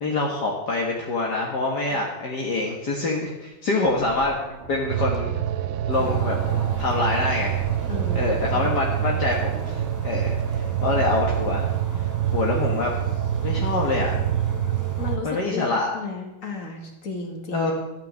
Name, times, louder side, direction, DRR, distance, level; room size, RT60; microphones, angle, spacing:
voice 1, 0.0-4.3 4.7-5.3 5.9-6.4 6.8-7.6 8.2-11.7 11.9-12.9 13.4-14.1 15.2-15.9 17.5-17.7, left 3 dB, 60° left, -1 dB, 2.1 m, -25 dB
sound 1, 3.8-10.0, right 3 dB, 40° right, 1.8 m, -42 dB
sound 2, 4.9-15.2, right 11 dB, 75° right, 0.7 m, -26 dB
sound 3, 5.9-15.2, left 2 dB, 10° left, 1.3 m, -39 dB
voice 2, 7.9-8.6 15.0-17.7, left 4 dB, 40° left, 2 dB, 2.6 m, -34 dB
12.5 x 7.8 x 8.3 m, 1.0 s
omnidirectional pair, 2.1 m